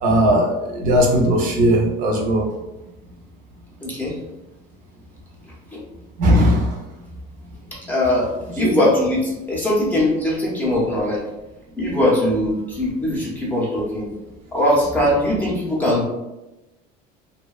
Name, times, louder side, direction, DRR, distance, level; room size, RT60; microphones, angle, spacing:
voice 1, 0.0-2.5 6.2-6.8 8.6-8.7, equal, 50° right, 0 dB, 0.5 m, -18 dB
voice 2, 3.8-4.2 5.7-5.8 7.9-8.3 8.6-11.2 11.8-14.1 14.5-16.1, left 1 dB, 10° left, -5 dB, 0.5 m, -20 dB
2.6 x 2.1 x 2.3 m, 1.0 s
cardioid pair, 155°, 18 cm